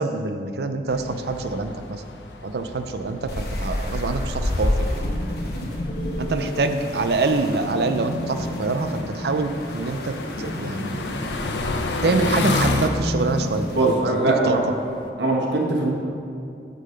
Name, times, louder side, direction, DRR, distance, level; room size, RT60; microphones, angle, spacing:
voice 1, 0.0-2.0 2.4-4.9 6.2-11.1 12.0-14.7, right 3 dB, 65° right, 8 dB, 0.5 m, -25 dB
sound 1, 0.9-12.9, left 3 dB, 85° left, 0.6 m, -32 dB
sound 2, 3.2-15.1, left 1 dB, 25° left, 0.5 m, -32 dB
sound 3, 3.3-13.9, left 1 dB, 65° left, 1.0 m, -33 dB
voice 2, 13.7-14.6 15.2-15.9, right 2 dB, 85° right, -2 dB, 1.3 m, -21 dB
8.2 x 3.9 x 6.6 m, 2.5 s
head